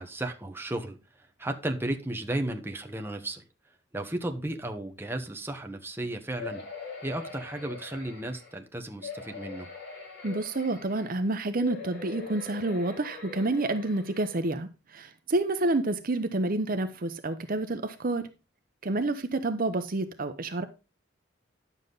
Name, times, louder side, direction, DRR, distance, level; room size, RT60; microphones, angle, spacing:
voice 1, 0.0-3.4 3.9-6.6 7.0-9.7, right 1 dB, 10° right, 1.3 m, -34 dB
sound 1, 6.4-8.5 9.0-11.2 11.6-14.4 15.0-15.1 15.4-15.5, left 5 dB, 60° left, 6.9 m, -42 dB
voice 2, 10.2-18.2 18.8-20.7, right 2 dB, 50° right, 0.8 m, -29 dB
10.5 x 7.4 x 4.0 m
head